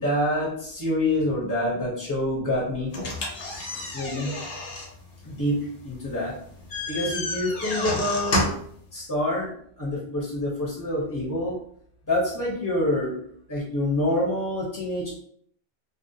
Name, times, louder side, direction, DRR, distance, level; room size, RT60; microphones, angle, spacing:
voice 1, 0.0-2.9 3.4-4.4 5.2-6.4 6.9-8.5 8.9-9.5 9.8-11.6 12.1-13.2 13.5-15.1, left 1 dB, 25° left, -4 dB, 0.4 m, -27 dB
sound 1, 2.9-8.8, left 2 dB, 70° left, 0.9 m, -31 dB
2.4 x 2.0 x 2.6 m, 0.64 s
omnidirectional pair, 1.0 m